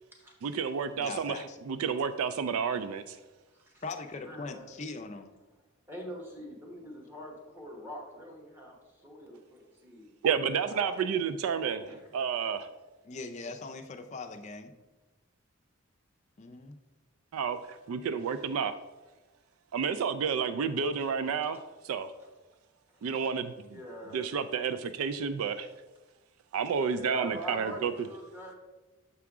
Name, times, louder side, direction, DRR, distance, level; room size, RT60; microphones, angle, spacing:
voice 1, 0.4-3.2 10.2-11.8 12.1-12.7 17.3-18.7 19.7-22.1 23.0-23.5 24.1-25.7 26.5-27.9, right 6 dB, 90° right, 11 dB, 0.3 m, -30 dB
voice 2, 1.0-1.6 3.8-5.3 13.0-14.7 16.4-16.8, left 3 dB, 35° left, 7 dB, 0.5 m, -40 dB
voice 3, 4.2-4.7 5.9-10.1 10.7-11.0 11.6-12.2 20.7-21.0 21.4-21.5 22.2-22.3 22.9-23.0 23.7-24.3 26.9-28.5, equal, 10° right, -2 dB, 1.1 m, -44 dB
6.9 x 4.7 x 3.6 m, 1.1 s
head